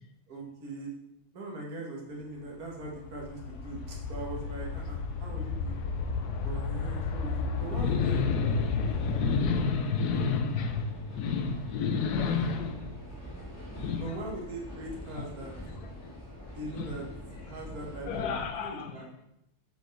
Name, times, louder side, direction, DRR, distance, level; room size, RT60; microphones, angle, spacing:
voice 1, 0.3-0.9 1.3-5.7 6.4-8.2 14.0-15.5 16.5-17.1 17.4-19.1, right 2 dB, 70° right, 1.9 m, -41 dB
sound 1, 2.4-9.7, left 4 dB, 60° left, 0.9 m, -33 dB
sound 2, 7.5-18.5, equal, 10° left, 1.6 m, -44 dB
voice 2, 7.7-13.2 13.8-14.2 15.2-15.3 16.8-16.9 17.8-19.1, left 5 dB, 85° left, 1.3 m, -30 dB
7.8 x 4.6 x 3.2 m
omnidirectional pair, 1.6 m